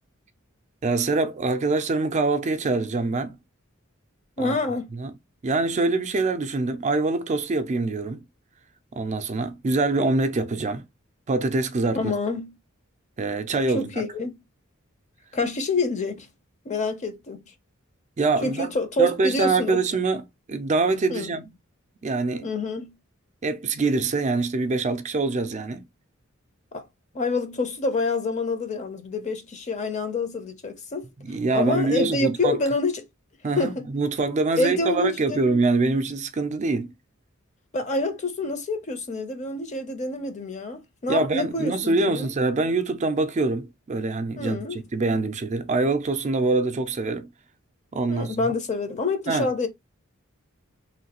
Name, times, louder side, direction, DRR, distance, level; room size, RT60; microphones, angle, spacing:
voice 1, 0.8-3.4 4.4-4.5 4.9-5.1 5.4-8.2 9.0-10.8 11.3-12.1 13.2-13.9 18.2-18.7 19.0-21.5 22.0-22.5 23.4-25.8 31.2-32.6 33.4-36.9 41.1-47.3 47.9-48.5 49.3-49.5, right 3 dB, 35° right, 0.4 m, -24 dB
voice 2, 4.4-4.9 11.9-12.5 13.7-14.4 15.3-16.3 16.7-17.4 18.4-19.8 21.1-21.3 22.4-22.9 26.7-26.8 27.1-31.0 31.5-33.0 33.6-33.8 34.6-35.5 37.7-42.3 44.4-44.8 48.1-49.7, left 3 dB, 35° left, 0.6 m, -27 dB
3.1 x 2.2 x 2.9 m
head